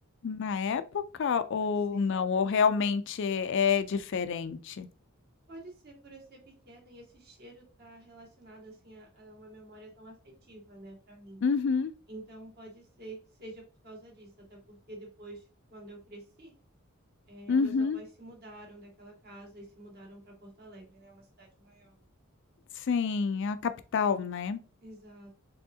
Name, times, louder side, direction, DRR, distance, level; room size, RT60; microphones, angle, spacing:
voice 1, 0.2-4.9 11.4-11.9 17.5-18.0 22.8-24.6, left 5 dB, 60° left, 0.4 m, -28 dB
voice 2, 1.5-2.3 5.5-11.4 12.1-16.5 17.3-22.0 24.8-25.3, right 1 dB, 50° right, 1.8 m, -49 dB
4.5 x 3.5 x 2.7 m
head